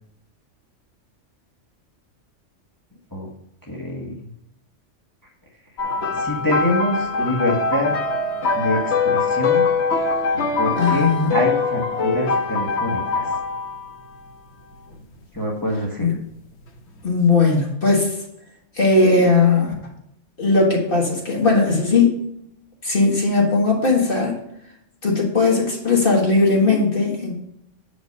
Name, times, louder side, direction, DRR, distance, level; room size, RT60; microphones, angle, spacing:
voice 1, 3.6-4.3 6.1-7.9 8.5-9.6 10.6-13.4 15.3-16.1, left 1 dB, 15° left, -2 dB, 1.4 m, -25 dB
sound 1, 5.8-14.0 14.9-15.1 17.0-17.1, left 4 dB, 65° left, 1.2 m, -22 dB
voice 2, 10.8-11.3 16.0-16.1 17.0-18.2 18.8-19.7 20.4-22.2 22.8-24.3 25.0-27.4, left 3 dB, 45° left, -1 dB, 1.7 m, -18 dB
7.9 x 5.1 x 5.3 m, 0.79 s
omnidirectional pair, 1.3 m